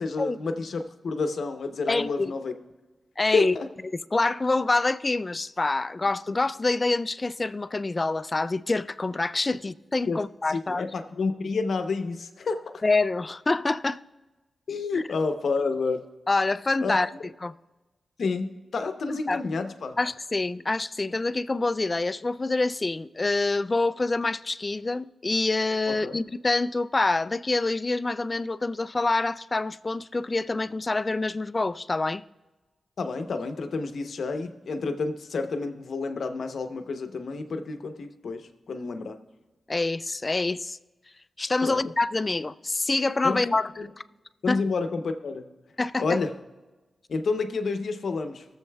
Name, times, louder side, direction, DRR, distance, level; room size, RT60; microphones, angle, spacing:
voice 1, 0.0-2.5 3.3-3.7 6.3-6.4 10.1-10.2 10.5-12.8 14.7-16.0 16.8-17.0 18.2-20.0 25.9-26.2 33.0-39.2 41.6-41.8 43.2-43.9 44.4-45.4 46.0-46.3 47.1-48.4, left 4 dB, 70° left, 0.7 m, -29 dB
voice 2, 1.9-2.3 3.2-3.6 4.1-10.9 12.8-14.0 14.9-15.0 16.3-17.1 17.4-17.5 19.1-19.4 20.0-32.2 39.7-40.8 41.4-43.7 44.5-44.6 45.8-46.2, left 3 dB, 30° left, 0.3 m, -26 dB
20.0 x 7.2 x 2.3 m
cardioid pair, 75°, 0 cm